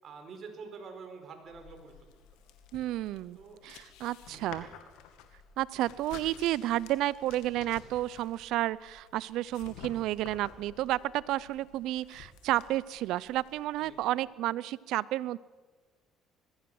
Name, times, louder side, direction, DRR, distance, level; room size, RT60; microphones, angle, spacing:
voice 1, 0.0-1.9 3.3-3.6 4.3-4.7 13.8-14.1, right 5 dB, 50° right, 5 dB, 4.7 m, -47 dB
sound 1, 1.5-14.2, left 8 dB, 85° left, 2.2 m, -52 dB
voice 2, 2.7-3.4 3.6-4.7 5.6-15.4, right 15 dB, 75° right, 21 dB, 0.6 m, -31 dB
21.0 x 16.0 x 7.8 m, 1.3 s
supercardioid pair, 95°, 0 cm